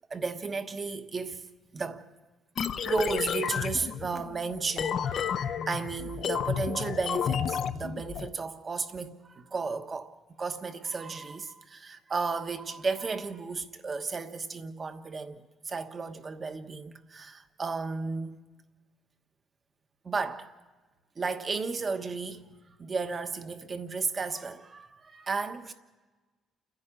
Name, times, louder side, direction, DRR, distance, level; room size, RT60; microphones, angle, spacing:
voice 1, 0.1-1.4 1.7-2.0 2.7-10.1 10.4-18.4 20.0-20.5 21.2-22.5 22.8-25.7, right 4 dB, 30° right, 1.2 m, -34 dB
sound 1, 2.6-8.3, left 8 dB, 50° left, 0.7 m, -31 dB
29.5 x 10.5 x 8.7 m
cardioid pair, 130°, 0 cm